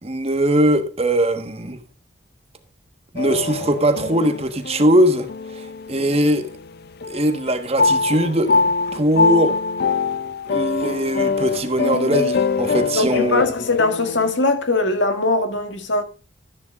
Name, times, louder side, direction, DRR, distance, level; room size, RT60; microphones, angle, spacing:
voice 1, 0.0-1.8 3.1-5.3 5.6-6.5 7.1-9.6 10.5-13.4, right 1 dB, 30° right, 1.3 m, -20 dB
sound 1, 3.2-6.7 7.0-14.3, left 4 dB, 50° left, 0.4 m, -23 dB
voice 2, 12.9-16.0, left 3 dB, 70° left, 2.0 m, -21 dB
13.0 x 10.5 x 2.4 m
head